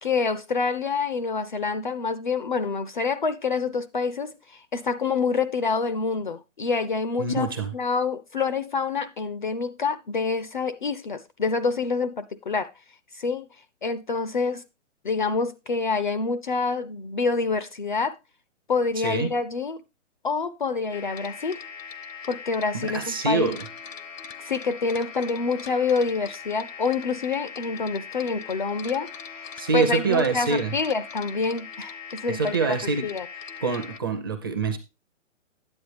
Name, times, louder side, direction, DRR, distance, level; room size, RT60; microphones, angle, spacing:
voice 1, 0.0-12.7 13.1-13.5 13.8-14.6 15.0-18.2 18.7-19.8 20.2-21.6 22.3-23.5 24.4-29.1 29.4-32.8 33.0-33.3, left 4 dB, 40° left, 0.4 m, -27 dB
voice 2, 7.2-7.7 19.0-19.3 22.7-23.7 29.6-30.7 32.3-33.1 33.6-34.8, right 4 dB, 20° right, 0.5 m, -25 dB
sound 1, 20.9-34.0, left 6 dB, 90° left, 0.9 m, -40 dB
9.6 x 8.2 x 3.3 m
hypercardioid pair, 160°, 38 cm